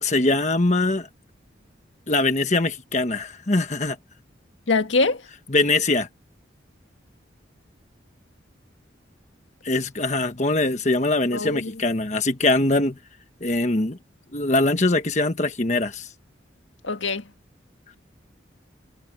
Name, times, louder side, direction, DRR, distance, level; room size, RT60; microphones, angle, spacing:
voice 1, 0.0-1.1 2.1-4.0 5.5-6.1 9.6-13.0 13.4-14.0 14.3-16.1, left 2 dB, 35° left, 1.3 m, -22 dB
voice 2, 4.7-5.3 11.3-11.8 16.8-17.3, left 3 dB, 80° left, 1.8 m, -23 dB
head